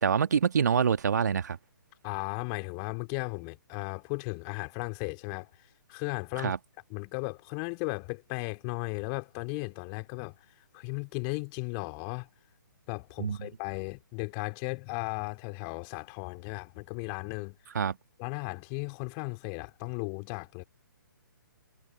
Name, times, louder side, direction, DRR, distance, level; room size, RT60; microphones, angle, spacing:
voice 1, 0.0-1.6 6.4-6.6 13.2-13.5 17.8-18.0, right 7 dB, 55° right, 1.7 m, -26 dB
voice 2, 2.0-6.5 6.9-10.3 10.7-12.3 12.9-17.6 18.2-20.6, left 40 dB or more, 25° left, 3.3 m, -36 dB
figure-of-eight pair, 130°, 11 cm